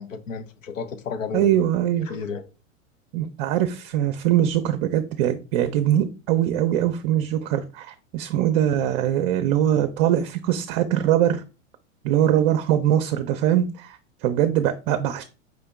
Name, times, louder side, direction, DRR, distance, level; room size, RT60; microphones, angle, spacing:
voice 1, 0.0-1.6 2.1-2.5, left 5 dB, 80° left, 0.8 m, -32 dB
voice 2, 1.3-2.1 3.1-11.4 12.0-14.0 14.2-15.2, right 11 dB, 45° right, 0.5 m, -22 dB
5.0 x 2.9 x 3.5 m
hypercardioid pair, 100°, 39 cm